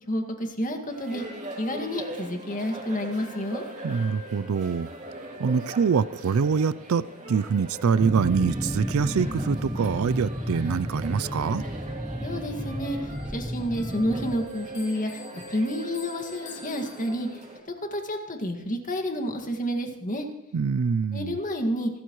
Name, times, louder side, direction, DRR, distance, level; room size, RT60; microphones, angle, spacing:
voice 1, 0.1-1.2 1.6-3.6 12.2-15.2 15.5-17.4 17.9-20.3 21.1-21.9, equal, 40° left, 5 dB, 1.9 m, -29 dB
sound 1, 0.9-17.6, right 2 dB, 35° right, 2.8 m, -41 dB
voice 2, 3.8-4.9 5.4-11.7 20.5-21.4, right 6 dB, 70° right, 18 dB, 0.4 m, -25 dB
sound 2, 8.0-14.4, equal, 10° right, 1.3 m, -32 dB
Bell, 13.1-17.6, left 6 dB, 60° left, 7.0 m, -50 dB
28.5 x 13.0 x 3.1 m, 0.91 s
head